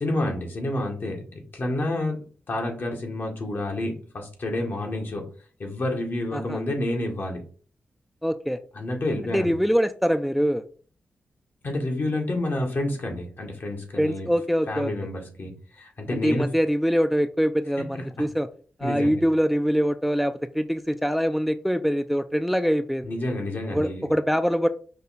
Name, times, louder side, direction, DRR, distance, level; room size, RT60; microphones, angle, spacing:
voice 1, 0.0-2.2 2.5-5.3 5.6-7.4 8.7-9.5 11.6-14.3 14.7-16.5 18.2-18.3 18.8-19.2 23.0-24.1, left 1 dB, 60° left, 1 dB, 1.5 m, -29 dB
voice 2, 8.2-8.6 9.2-10.6 14.0-14.9 16.1-18.5 18.8-23.1 23.7-24.7, equal, ahead, 9 dB, 0.4 m, -24 dB
5.3 x 2.3 x 4.2 m, 0.40 s
cardioid pair, 55°, 4 cm